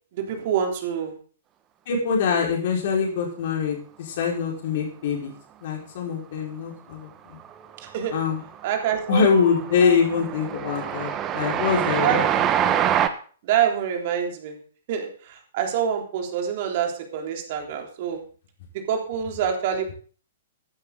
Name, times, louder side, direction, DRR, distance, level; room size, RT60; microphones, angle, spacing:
voice 1, 0.1-1.1 7.9-8.1 8.6-9.3 12.0-12.3 13.4-14.5 14.9-18.2 18.9-19.9, right 8 dB, 45° right, 3 dB, 3.4 m, -26 dB
voice 2, 1.9-5.3 5.6-7.4 8.1-8.4 9.1-12.4, left 6 dB, 45° left, -1 dB, 4.9 m, -24 dB
Train, 7.4-7.9 8.2-13.1, right 10 dB, 25° right, 1.2 m, -25 dB
15.0 x 12.5 x 3.9 m, 0.43 s
figure-of-eight pair, 110°, 0 cm